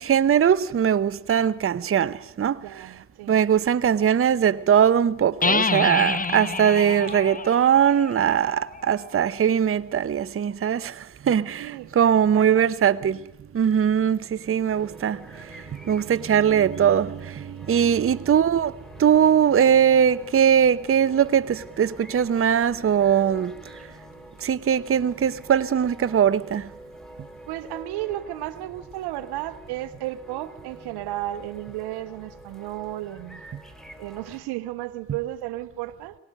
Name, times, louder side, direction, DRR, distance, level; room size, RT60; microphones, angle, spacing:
voice 1, 0.0-2.9 3.3-13.2 13.5-18.7 19.0-23.5 24.4-26.7, right 8 dB, 35° right, 0.8 m, -21 dB
voice 2, 2.6-3.4 11.6-12.7 18.0-18.3 27.5-33.4 34.0-36.2, right 14 dB, 75° right, 1.0 m, -34 dB
sound 1, 5.4-9.1, left 4 dB, 20° left, 0.9 m, -28 dB
sound 2, 14.7-34.4, equal, ahead, 3.7 m, -46 dB
23.0 x 18.0 x 6.5 m
hypercardioid pair, 45°, 39 cm